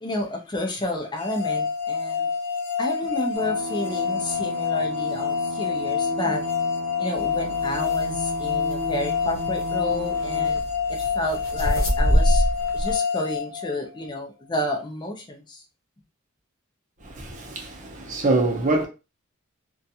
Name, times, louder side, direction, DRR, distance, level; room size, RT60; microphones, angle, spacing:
voice 1, 0.0-2.3 2.8-6.5 7.0-10.6 10.9-12.4 12.7-15.6, left 1 dB, 20° left, 0.4 m, -31 dB
sound 1, 1.2-14.1, left 6 dB, 90° left, 0.8 m, -27 dB
sound 2, 3.3-10.5, right 1 dB, 85° right, 0.6 m, -36 dB
sound 3, 7.1-13.0, equal, 60° left, 0.8 m, -26 dB
voice 2, 17.0-18.9, right 2 dB, 35° right, 0.6 m, -24 dB
2.5 x 2.2 x 2.7 m
head